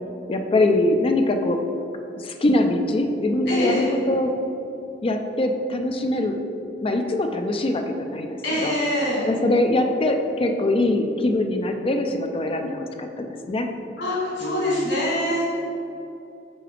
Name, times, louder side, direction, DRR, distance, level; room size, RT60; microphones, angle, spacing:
voice 1, 0.3-1.6 2.2-4.4 5.0-6.4 6.8-8.7 9.2-13.7 14.4-14.9, left 1 dB, 30° left, 5 dB, 0.4 m, -23 dB
voice 2, 3.5-3.9 8.4-9.3 14.0-15.6, left 1 dB, 65° left, -6 dB, 1.4 m, -24 dB
5.8 x 3.9 x 5.0 m, 2.8 s
head